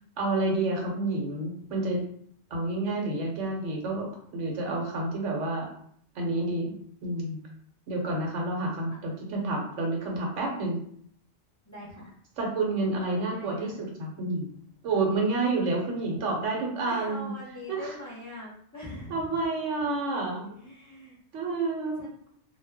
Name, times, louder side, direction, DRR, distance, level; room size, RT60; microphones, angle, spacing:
voice 1, 0.2-2.0 2.5-5.7 6.1-6.7 7.0-7.4 7.9-10.8 12.4-14.5 14.8-17.3 17.7-18.0 19.1-20.4 21.3-22.1, right 2 dB, 85° right, 0 dB, 1.1 m, -29 dB
voice 2, 11.6-12.1 13.0-13.8 16.8-19.3 20.4-21.2 22.0-22.1, left 1 dB, 15° left, -6 dB, 0.7 m, -43 dB
2.4 x 2.2 x 3.4 m, 0.64 s
omnidirectional pair, 1.2 m